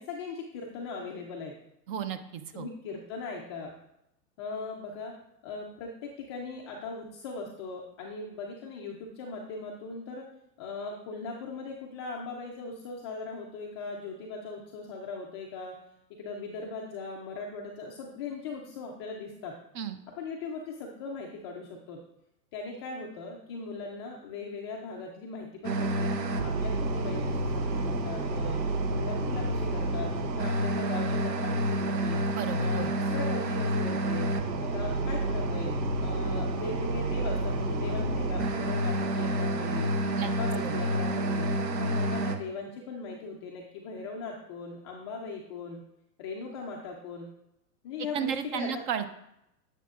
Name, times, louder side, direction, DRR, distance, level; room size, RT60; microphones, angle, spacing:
voice 1, 0.0-1.5 2.5-3.7 4.4-5.1 5.4-10.3 10.6-15.7 16.2-19.5 20.2-22.0 22.5-26.1 26.4-28.6 28.9-32.2 32.6-34.3 34.6-35.7 36.0-39.9 40.2-41.5 41.8-45.8 46.2-47.3 47.8-48.8, left 4 dB, 20° left, -1 dB, 0.3 m, -39 dB
voice 2, 1.9-2.7 19.7-20.0 32.3-32.9 40.2-40.3 40.6-40.8 48.1-49.1, right 8 dB, 35° right, 10 dB, 0.5 m, -33 dB
sound 1, 25.6-42.4, right 1 dB, 85° right, 1.1 m, -29 dB
9.1 x 6.9 x 2.4 m, 0.81 s
hypercardioid pair, 115°, 49 cm